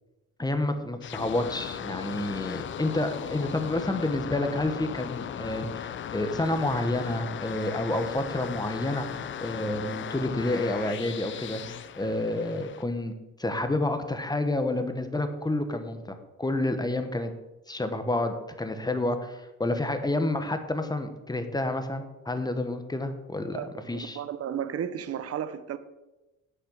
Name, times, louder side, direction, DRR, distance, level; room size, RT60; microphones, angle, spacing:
voice 1, 0.4-13.1 13.4-17.3 17.7-23.6 23.9-24.2, left 2 dB, 15° left, 1.1 m, -29 dB
sound 1, 1.0-12.8, left 9 dB, 40° left, 0.4 m, -37 dB
voice 2, 23.5-23.9 24.1-25.8, right 9 dB, 50° right, 0.8 m, -33 dB
8.1 x 5.8 x 6.4 m
cardioid pair, 90°, 30 cm